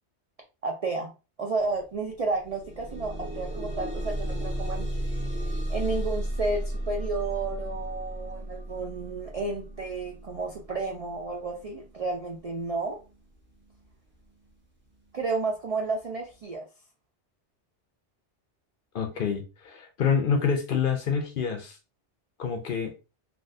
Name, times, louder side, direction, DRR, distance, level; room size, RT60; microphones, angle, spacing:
voice 1, 0.6-1.1 1.4-4.9 5.7-13.0 15.1-16.6, right 3 dB, 60° right, 0.4 m, -31 dB
sound 1, 1.6-1.7 2.1-13.1 13.9-14.0 14.5-14.6, right 1 dB, 10° right, 0.6 m, -34 dB
voice 2, 18.9-21.8 22.4-22.9, left 6 dB, 60° left, 0.6 m, -27 dB
3.5 x 2.3 x 2.6 m
omnidirectional pair, 1.2 m